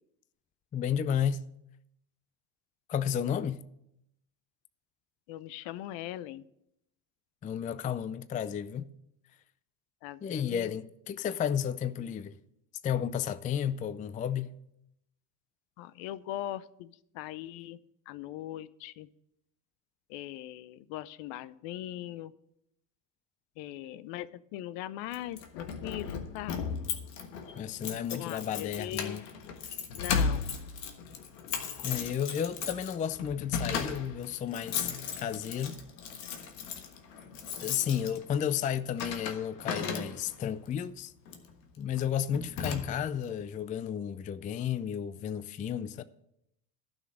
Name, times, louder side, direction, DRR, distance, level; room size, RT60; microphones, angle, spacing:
voice 1, 0.7-1.4 2.9-3.6 7.4-8.9 10.2-12.4 12.8-14.6 27.6-29.2 31.8-34.9 35.2-35.7 37.6-41.1 41.8-46.0, left 8 dB, 20° left, 0.4 m, -32 dB
voice 2, 5.3-6.5 10.0-10.7 15.8-17.8 18.1-19.1 20.1-22.3 23.6-26.7 28.1-29.2 29.9-30.5, left 13 dB, 65° left, 0.7 m, -40 dB
Keys jangling, 25.1-40.5 41.2-41.5 42.0-42.1 42.3-43.2, left 6 dB, 85° left, 1.5 m, -36 dB
11.5 x 6.4 x 7.6 m
hypercardioid pair, 80°, 49 cm